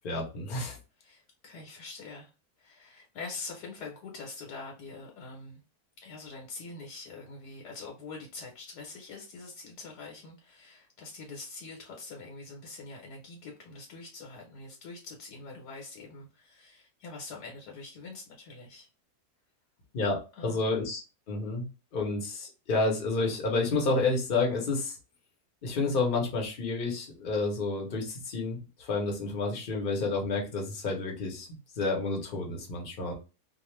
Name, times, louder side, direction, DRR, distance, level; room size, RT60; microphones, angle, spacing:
voice 1, 0.0-0.8 19.9-21.0 21.3-21.7 21.9-25.0 25.6-33.1, left 3 dB, 40° left, 0 dB, 0.8 m, -30 dB
voice 2, 1.0-2.3 2.6-5.6 6.0-18.9 20.4-20.7, left 3 dB, 85° left, -1 dB, 1.3 m, -44 dB
2.4 x 2.4 x 3.0 m, 0.31 s
omnidirectional pair, 1.7 m